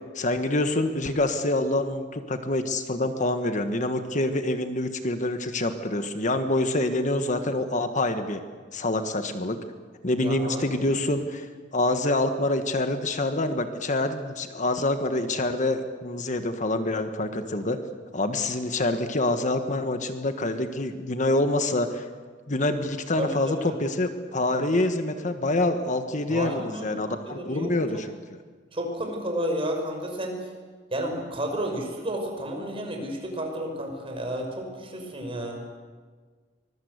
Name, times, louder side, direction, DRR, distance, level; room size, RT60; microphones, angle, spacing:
voice 1, 0.1-8.4 8.7-9.6 10.0-17.8 18.1-22.1 22.5-28.2, left 2 dB, 45° left, 8 dB, 1.4 m, -26 dB
voice 2, 10.2-10.9 23.2-23.7 26.3-27.7 28.7-30.4 30.9-35.6, right 1 dB, 30° right, 3 dB, 5.3 m, -32 dB
24.5 x 21.5 x 8.2 m, 1.5 s
head